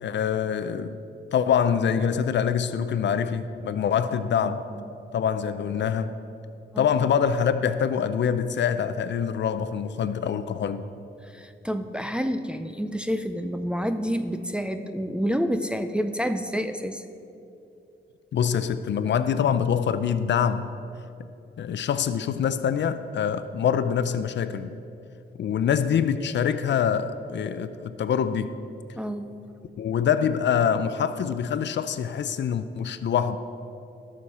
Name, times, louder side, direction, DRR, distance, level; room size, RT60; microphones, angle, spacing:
voice 1, 0.0-1.0 1.3-4.6 5.1-6.1 6.8-10.8 18.3-20.7 21.6-24.8 25.4-28.5 29.8-33.4, left 7 dB, 65° left, 11 dB, 0.5 m, -25 dB
voice 2, 4.4-4.9 6.7-6.9 11.2-17.0 29.0-29.3, equal, 5° right, 7 dB, 0.4 m, -29 dB
18.0 x 6.4 x 4.3 m, 2.7 s
wide cardioid pair, 135°, 20 cm